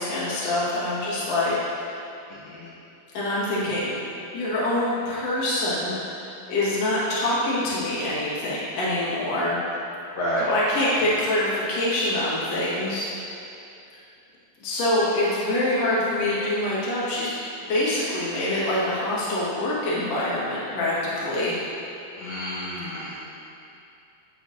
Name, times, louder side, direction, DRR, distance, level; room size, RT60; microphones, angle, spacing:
voice 1, 0.0-1.8 3.1-3.9 4.3-9.6 10.4-13.3 14.6-17.3 17.7-21.5, left 1 dB, 50° left, -9 dB, 2.0 m, -25 dB
voice 2, 2.3-2.7 10.1-10.5 22.1-23.3, equal, 75° left, -9 dB, 2.1 m, -30 dB
11.5 x 6.5 x 2.8 m, 2.7 s
omnidirectional pair, 5.4 m